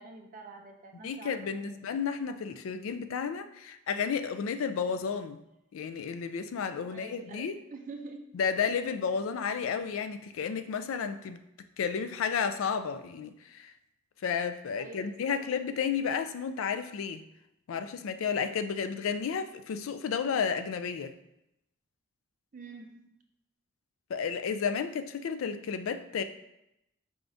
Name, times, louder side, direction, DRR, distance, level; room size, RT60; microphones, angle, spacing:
voice 1, 0.0-1.8 6.8-8.3 14.8-15.5 22.5-23.1, right 3 dB, 40° right, 4 dB, 0.4 m, -47 dB
voice 2, 1.0-5.4 5.7-7.6 8.3-11.4 11.8-13.7 14.2-17.2 17.7-21.1 24.1-26.2, left 6 dB, 80° left, 10 dB, 0.3 m, -32 dB
4.8 x 3.3 x 2.6 m, 0.85 s
head